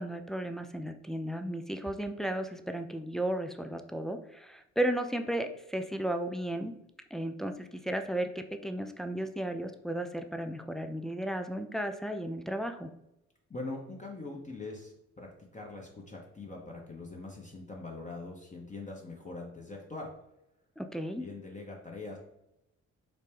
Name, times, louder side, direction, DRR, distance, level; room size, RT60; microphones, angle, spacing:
voice 1, 0.0-6.7 7.1-12.9 20.8-21.3, right 1 dB, ahead, 6 dB, 0.3 m, -34 dB
voice 2, 13.5-20.1 21.0-22.2, left 3 dB, 20° left, -1 dB, 0.8 m, -43 dB
4.1 x 2.1 x 3.4 m, 0.86 s
hypercardioid pair, 45°, 36 cm